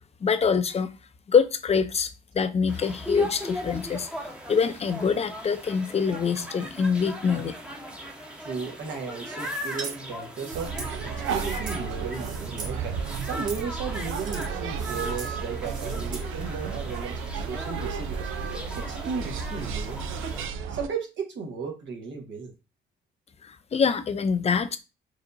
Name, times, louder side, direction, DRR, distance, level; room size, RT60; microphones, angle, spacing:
voice 1, 0.2-0.9 1.3-4.1 4.5-7.5 23.4-24.8, left 6 dB, 30° left, 0.5 m, -25 dB
sound 1, 2.7-20.5, equal, 5° right, 0.9 m, -39 dB
voice 2, 8.4-18.3 18.8-20.4 20.7-22.5, right 5 dB, 65° right, 1.4 m, -35 dB
sound 2, 9.4-10.0 10.4-11.8 12.1-12.8 13.0-13.6 13.9-14.5 14.8-15.3 15.6-16.2, right 4 dB, 40° right, 1.4 m, -40 dB
sound 3, 10.5-20.9, right 6 dB, 90° right, 0.5 m, -33 dB
4.7 x 2.8 x 2.6 m
cardioid pair, 90°, 20 cm